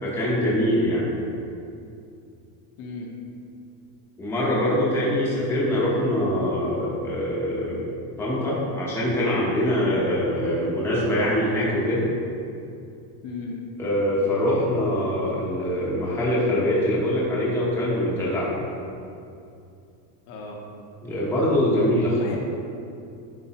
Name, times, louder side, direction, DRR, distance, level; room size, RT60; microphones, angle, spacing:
voice 1, 0.0-1.0 4.2-7.9 8.2-12.1 13.8-18.6 21.0-22.1, left 1 dB, 5° left, -7 dB, 0.8 m, -23 dB
voice 2, 2.8-3.1 13.2-13.6 20.3-20.6 22.0-22.4, left 3 dB, 45° left, -1 dB, 0.8 m, -35 dB
9.9 x 4.6 x 2.9 m, 2.5 s
cardioid pair, 175°, 48 cm